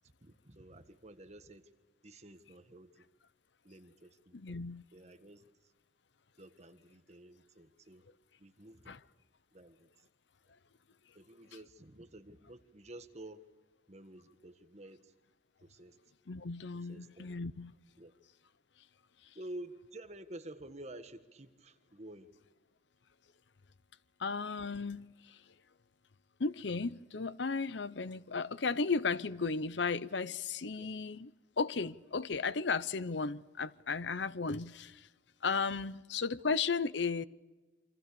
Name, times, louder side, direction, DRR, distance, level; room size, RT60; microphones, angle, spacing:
voice 1, 0.2-1.7 2.0-3.0 3.6-4.6 4.9-5.4 6.4-8.0 8.4-9.0 9.5-9.9 11.1-13.4 13.9-15.1 15.6-16.0 16.9-17.3 18.0-18.1 19.3-22.3 30.8-30.9, right 1 dB, 35° right, 1.6 m, -50 dB
voice 2, 4.3-4.8 8.9-9.0 16.3-17.7 24.2-25.4 26.4-31.3 31.6-35.1 35.4-37.3, left 4 dB, 70° left, 0.8 m, -35 dB
28.0 x 25.5 x 7.0 m
head